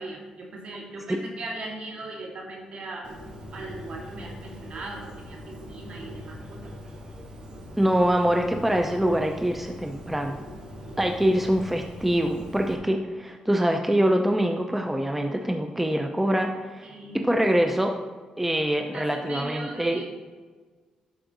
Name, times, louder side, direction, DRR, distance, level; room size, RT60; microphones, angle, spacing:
voice 1, 0.0-3.1 3.5-6.7 16.8-17.2 18.9-20.0, right 2 dB, 55° right, -1 dB, 2.2 m, -39 dB
Bird, 3.0-12.7, equal, 40° right, 1.9 m, -41 dB
voice 2, 7.8-10.4 11.0-18.0 18.4-20.0, right 1 dB, 10° right, 5 dB, 0.6 m, -24 dB
11.5 x 4.9 x 3.9 m, 1.5 s
cardioid pair, 85°, 2 cm